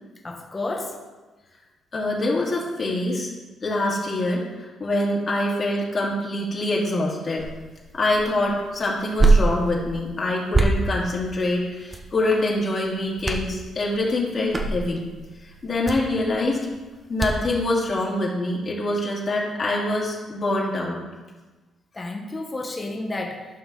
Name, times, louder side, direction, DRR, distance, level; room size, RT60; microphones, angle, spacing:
voice 1, 0.2-1.0 21.9-23.5, left 2 dB, 20° left, 1 dB, 1.2 m, -31 dB
voice 2, 1.9-3.3 3.6-7.4 7.9-15.0 15.4-16.7 17.1-21.0, left 1 dB, 40° left, -4 dB, 2.6 m, -25 dB
sound 1, 7.4-17.6, right 3 dB, 25° right, 1.0 m, -26 dB
10.5 x 5.6 x 4.1 m, 1.2 s
cardioid pair, 90°, 0 cm